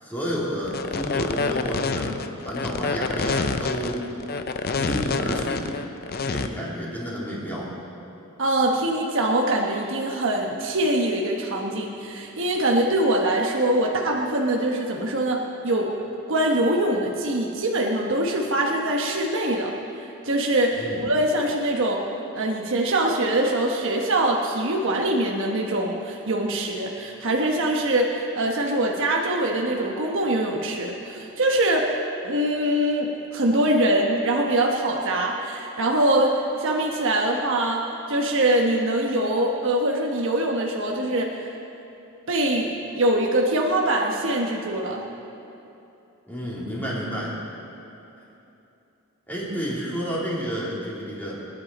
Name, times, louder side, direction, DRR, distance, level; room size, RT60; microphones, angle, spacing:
voice 1, 0.0-2.2 2.4-4.1 4.7-5.6 6.2-7.7 20.7-21.0 46.3-47.3 49.3-51.4, equal, 10° left, -7 dB, 3.5 m, -30 dB
sound 1, 0.6-6.5, left 4 dB, 45° left, 0.6 m, -27 dB
voice 2, 8.4-15.9 16.3-19.7 20.0-22.0 22.3-31.9 32.2-37.8 38.1-41.5 42.3-45.0, right 1 dB, 60° right, 0 dB, 1.2 m, -23 dB
24.0 x 10.5 x 4.2 m, 2.9 s
head